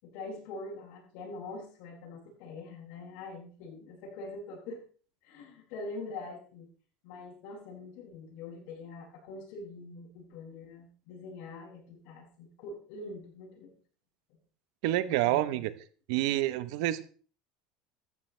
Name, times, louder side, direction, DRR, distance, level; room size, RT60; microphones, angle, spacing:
voice 1, 0.0-4.8 5.2-6.7 7.0-13.7 15.1-15.7, left 3 dB, 65° left, -1 dB, 6.9 m, -44 dB
voice 2, 14.8-15.7 16.1-17.0, right 15 dB, 75° right, 14 dB, 0.9 m, -28 dB
15.5 x 13.5 x 3.3 m, 0.41 s
cardioid pair, 155°, 3 cm